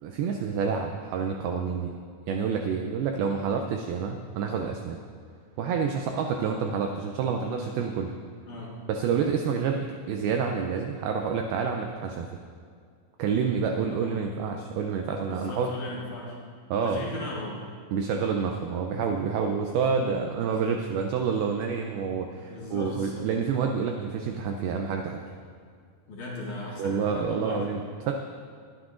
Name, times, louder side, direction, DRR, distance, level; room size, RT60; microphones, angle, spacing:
voice 1, 0.0-1.9 2.3-5.0 5.6-8.1 8.9-9.8 10.1-12.3 13.2-15.7 16.7-17.0 17.9-25.2 26.8-28.1, right 6 dB, 85° right, 3 dB, 2.2 m, -28 dB
voice 2, 8.5-8.8 13.7-14.3 15.3-16.4 16.8-17.6 22.5-23.3 26.1-27.7, left 2 dB, 55° left, -5 dB, 2.6 m, -38 dB
21.5 x 9.8 x 2.5 m, 2.1 s
omnidirectional pair, 5.0 m